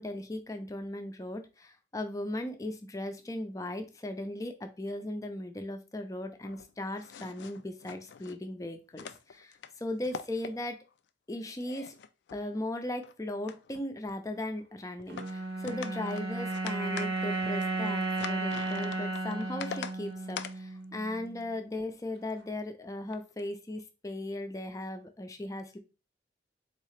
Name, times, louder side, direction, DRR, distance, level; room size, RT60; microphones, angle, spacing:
voice 1, 0.0-10.8 11.3-12.0 12.3-25.8, left 1 dB, 20° left, 6 dB, 0.4 m, -37 dB
sound 1, 6.4-8.4 8.9-9.7 10.0-10.9 11.4-13.1 13.4-14.1 15.0-15.3 15.6-19.9 20.4-20.6 22.3-22.5 23.1-23.4, left 7 dB, 80° left, 0.3 m, -44 dB
sound 2, 15.1-21.5, right 2 dB, 65° right, 0.7 m, -34 dB
3.9 x 2.7 x 3.2 m, 0.31 s
head